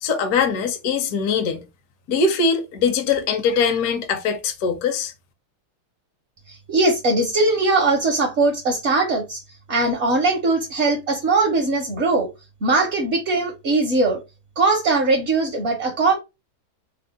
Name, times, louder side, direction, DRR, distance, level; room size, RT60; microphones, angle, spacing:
voice 1, 0.0-1.6 2.1-5.1, left 5 dB, 65° left, 1.0 m, -22 dB
voice 2, 6.5-9.4 9.7-12.3 12.6-14.2 14.6-16.2, right 3 dB, 60° right, 0.7 m, -20 dB
3.5 x 2.0 x 3.6 m
omnidirectional pair, 2.3 m